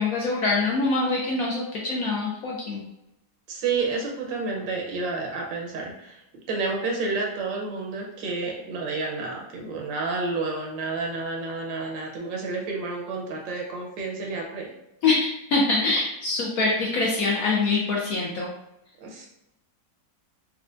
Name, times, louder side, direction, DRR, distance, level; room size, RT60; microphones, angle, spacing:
voice 1, 0.0-2.8 15.0-18.5, left 3 dB, 70° left, -3 dB, 0.8 m, -24 dB
voice 2, 3.5-6.2 6.5-14.7 19.0-19.3, right 3 dB, 85° right, 0 dB, 1.4 m, -30 dB
4.3 x 2.2 x 2.5 m, 0.88 s
omnidirectional pair, 2.0 m